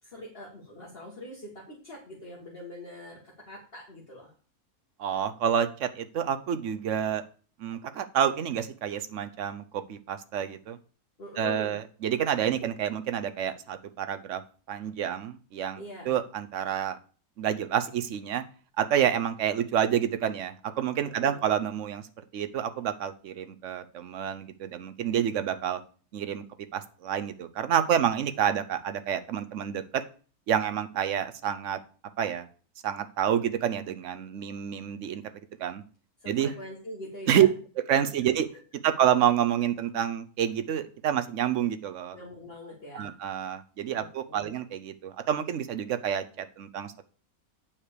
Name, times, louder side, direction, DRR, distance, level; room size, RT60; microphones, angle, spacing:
voice 1, 0.0-3.2 3.5-4.3 11.2-11.8 15.7-16.1 21.0-21.5 36.2-37.5 42.1-43.1 43.9-44.5, left 1 dB, 40° left, -3 dB, 2.1 m, -43 dB
voice 2, 5.0-7.2 7.6-10.8 11.4-14.4 14.7-17.0 17.4-18.4 18.8-22.0 22.3-25.8 26.1-26.4 26.7-30.0 30.5-31.8 32.2-32.5 32.8-35.2 35.6-35.8 36.3-36.5 37.3-37.5 37.9-38.5 38.8-42.2 42.9-47.0, right 9 dB, 60° right, 10 dB, 1.0 m, -28 dB
8.8 x 4.8 x 6.7 m, 0.40 s
omnidirectional pair, 1.6 m